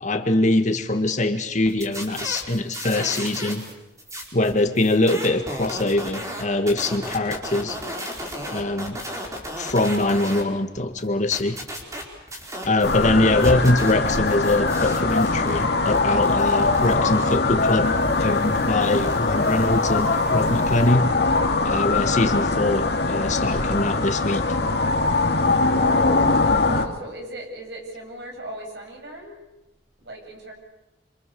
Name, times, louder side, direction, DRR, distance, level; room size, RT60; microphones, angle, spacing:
voice 1, 0.0-3.7 4.3-7.8 8.5-9.0 9.6-11.6 12.6-21.1 21.6-24.4, left 2 dB, 45° left, 6 dB, 1.8 m, -23 dB
sound 1, 1.7-3.7 4.0-10.4 10.8-13.0 13.4-20.9, equal, 20° right, 4.9 m, -36 dB
sound 2, 12.8-26.9, left 3 dB, 65° left, 2.5 m, -22 dB
voice 2, 25.7-26.3 26.6-29.4 30.0-30.5, right 1 dB, 70° right, 1 dB, 7.9 m, -37 dB
27.0 x 26.5 x 7.0 m, 0.97 s
head